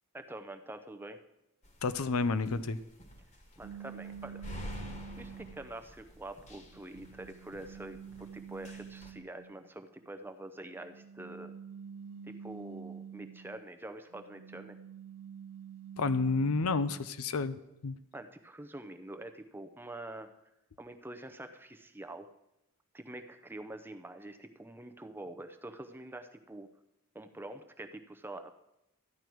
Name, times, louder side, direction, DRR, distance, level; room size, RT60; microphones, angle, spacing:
voice 1, 0.1-1.2 3.6-4.4 5.2-11.5 12.3-14.8 18.1-20.3 20.8-22.3 22.9-26.7 27.1-28.5, right 1 dB, 10° right, 7 dB, 0.6 m, -46 dB
sound 1, 1.6-9.1, equal, 35° left, 1.4 m, -49 dB
voice 2, 1.8-2.8 16.0-18.0, left 4 dB, 80° left, 13 dB, 0.6 m, -30 dB
sound 2, 3.6-5.8 6.4-9.6 10.7-13.7 14.1-17.1, right 7 dB, 60° right, 0.3 m, -48 dB
13.5 x 10.5 x 4.6 m, 0.87 s
head